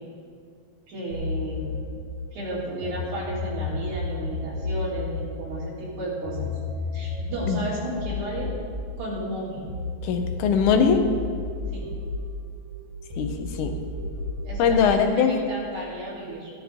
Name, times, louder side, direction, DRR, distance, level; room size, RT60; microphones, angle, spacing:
voice 1, 0.9-1.7 2.3-6.5 6.9-8.5 9.0-9.6 11.7-11.9 14.4-16.5, right 1 dB, 70° right, -6 dB, 4.3 m, -33 dB
sound 1, 1.1-2.9 3.2-9.8 10.1-12.8 13.1-14.7, left 3 dB, 40° right, 2.5 m, -32 dB
voice 2, 10.0-11.0 13.2-13.7 14.6-15.4, left 6 dB, 90° left, 6 dB, 2.4 m, -21 dB
14.0 x 11.0 x 3.6 m, 2.1 s
omnidirectional pair, 3.4 m